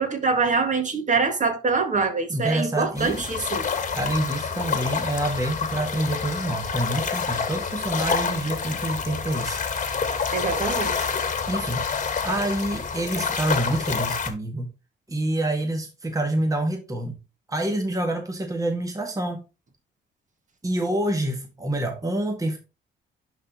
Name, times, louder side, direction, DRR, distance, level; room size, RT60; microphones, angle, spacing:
voice 1, 0.0-3.7 10.3-11.1, right 4 dB, 40° right, 1.9 m, -24 dB
voice 2, 2.3-3.3 3.9-9.6 11.5-14.7 15.1-17.2 17.5-19.4 20.6-22.6, right 1 dB, 15° right, 1.4 m, -27 dB
sound 1, 2.9-14.3, left 5 dB, 40° left, 1.4 m, -28 dB
10.5 x 3.9 x 2.9 m
cardioid pair, 90°, 20 cm